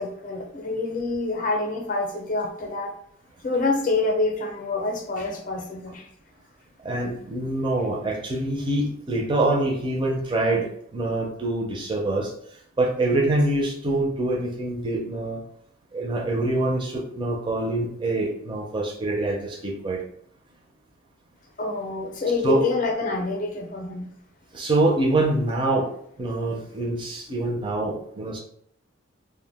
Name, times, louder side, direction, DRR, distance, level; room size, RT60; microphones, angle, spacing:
voice 1, 0.0-2.9 3.4-6.1 21.6-24.1, left 3 dB, 40° left, 2 dB, 0.5 m, -27 dB
voice 2, 6.8-12.3 12.8-15.4 15.9-20.0 22.4-22.6 24.5-25.9 26.2-28.4, right 2 dB, 25° right, 0 dB, 0.4 m, -25 dB
2.2 x 2.1 x 3.3 m, 0.66 s
head